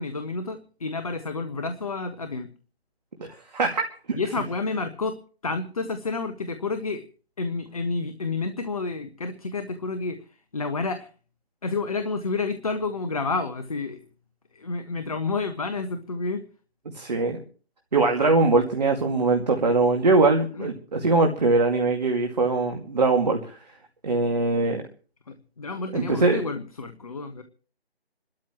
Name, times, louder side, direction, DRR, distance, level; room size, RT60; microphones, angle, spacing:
voice 1, 0.0-2.5 4.1-7.0 7.4-11.1 11.6-14.0 14.5-16.5 20.5-20.7 25.3-27.4, left 3 dB, 35° left, 9 dB, 1.3 m, -30 dB
voice 2, 3.2-4.2 16.9-17.4 17.9-23.6 24.0-24.8 25.9-26.4, right 3 dB, 40° right, 3 dB, 2.3 m, -22 dB
27.5 x 13.0 x 3.1 m, 0.39 s
figure-of-eight pair, 160°, 31 cm